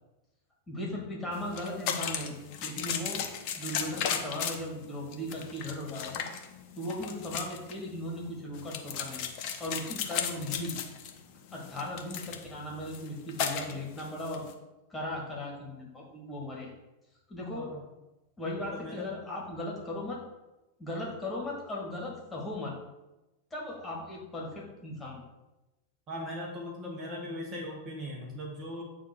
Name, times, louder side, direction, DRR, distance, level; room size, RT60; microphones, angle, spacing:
voice 1, 0.7-3.2 3.6-6.3 6.8-9.2 9.6-10.8 11.5-14.4 14.9-16.7 17.3-17.7 18.4-20.2 20.8-22.7 23.5-25.2, left 1 dB, 10° left, -3 dB, 1.8 m, -37 dB
sound 1, 1.3-14.5, left 8 dB, 45° left, 0.7 m, -36 dB
voice 2, 18.7-19.1 26.1-28.8, left 1 dB, 30° right, -1 dB, 1.2 m, -39 dB
8.1 x 2.7 x 4.4 m, 1.0 s
figure-of-eight pair, 90°, 0 cm